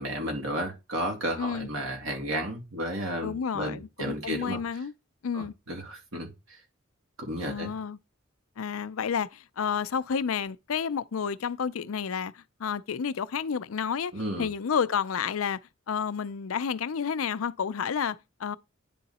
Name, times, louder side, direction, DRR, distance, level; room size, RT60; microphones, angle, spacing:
voice 1, 0.0-4.6 5.3-6.3 7.2-7.7 14.1-14.5, right 1 dB, 75° right, 2.5 m, -33 dB
voice 2, 1.4-1.7 3.2-4.9 5.2-5.5 7.5-8.0 8.6-14.1 14.4-15.6 15.9-18.6, left 7 dB, 90° left, 0.5 m, -30 dB
10.0 x 3.8 x 4.2 m
head